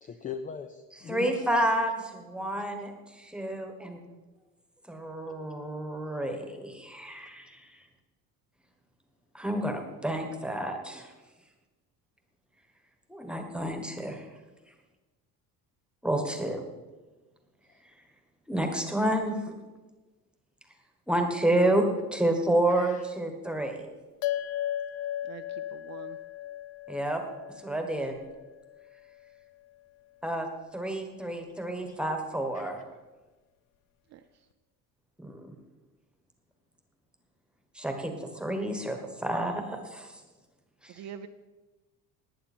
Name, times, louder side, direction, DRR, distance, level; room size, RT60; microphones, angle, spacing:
voice 1, 0.0-1.5 2.4-2.6 4.1-4.2 16.2-16.3 22.7-23.0 31.9-32.0 32.5-32.7, left 7 dB, 25° left, 9 dB, 0.4 m, -41 dB
voice 2, 1.1-4.0 4.9-7.8 9.3-11.1 13.1-14.2 16.0-16.6 18.5-19.5 21.1-23.9 26.9-27.2 27.6-28.1 30.2-30.5 30.7-32.8 35.2-35.5 37.7-40.1 40.8-40.9, right 1 dB, 5° right, 4 dB, 1.3 m, -29 dB
sound 1, 24.2-28.9, left 12 dB, 70° left, 0.6 m, -36 dB
voice 3, 25.7-26.2 34.1-34.2 41.0-41.3, right 9 dB, 45° right, 8 dB, 0.6 m, -43 dB
19.0 x 9.0 x 4.3 m, 1.2 s
cardioid pair, 165°, 37 cm